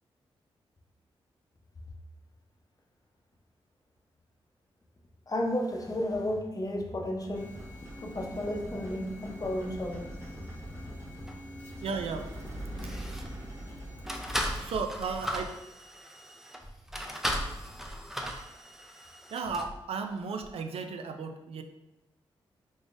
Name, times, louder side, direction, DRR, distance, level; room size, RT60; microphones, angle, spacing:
voice 1, 5.3-7.6 8.0-10.2 12.8-13.0, left 1 dB, 35° left, 1 dB, 0.7 m, -33 dB
sound 1, 7.3-14.7, right 1 dB, 25° right, 1.2 m, -43 dB
sound 2, 11.3-11.4 12.2-12.4 12.7-13.4 14.1-19.8 20.4-20.5, equal, 5° right, 0.5 m, -37 dB
voice 2, 11.8-12.4 12.8-12.9 14.6-15.6 18.3-18.5 19.3-21.6, right 5 dB, 70° right, 6 dB, 0.4 m, -35 dB
3.6 x 3.4 x 2.5 m, 0.92 s
cardioid pair, 55°, 10 cm